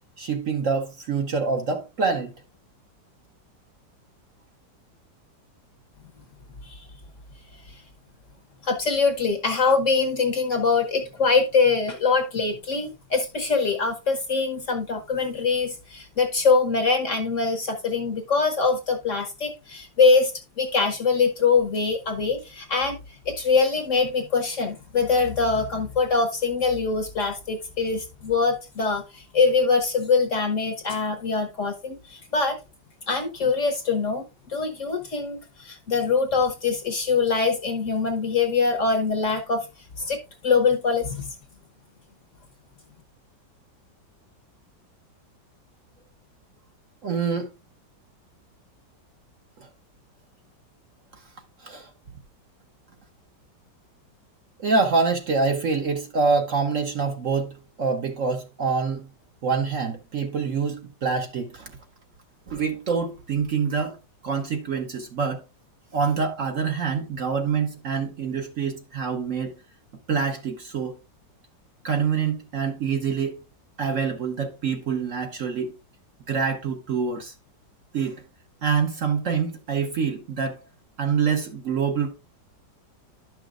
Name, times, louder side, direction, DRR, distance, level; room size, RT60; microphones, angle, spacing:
voice 1, 0.2-2.3 47.0-47.5 51.6-51.9 54.6-57.5 57.8-59.1 59.4-61.7 62.5-64.0 64.2-65.4 65.9-69.5 70.1-71.0 71.8-73.4 73.8-75.7 76.3-77.3 77.9-78.2 78.6-80.6 81.0-82.1, right 5 dB, 50° right, 1.1 m, -26 dB
voice 2, 8.6-20.3 20.6-23.0 23.3-32.6 33.1-35.4 35.6-39.7 40.0-41.3, left 4 dB, 50° left, 1.1 m, -23 dB
11.0 x 6.1 x 2.5 m
omnidirectional pair, 2.0 m